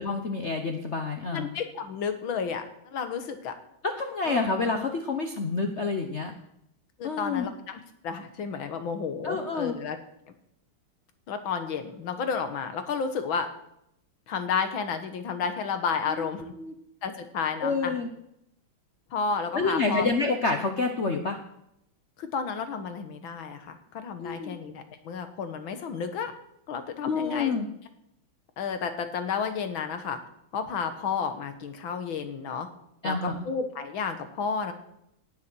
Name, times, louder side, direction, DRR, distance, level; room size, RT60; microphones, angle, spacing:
voice 1, 0.0-1.5 4.0-6.3 7.0-7.5 9.2-9.7 16.1-16.3 16.6-16.7 17.6-18.1 19.5-21.4 24.2-24.6 27.0-27.7 33.0-33.4, left 4 dB, 45° left, 5 dB, 0.9 m, -28 dB
voice 2, 1.3-3.6 4.2-4.6 7.0-10.0 11.3-13.5 14.3-16.6 17.0-18.0 19.1-20.1 22.2-26.3 26.7-27.6 28.6-30.2 30.5-32.7 33.0-34.7, left 6 dB, 75° left, 8 dB, 2.1 m, -32 dB
18.5 x 7.3 x 6.2 m, 0.79 s
omnidirectional pair, 2.2 m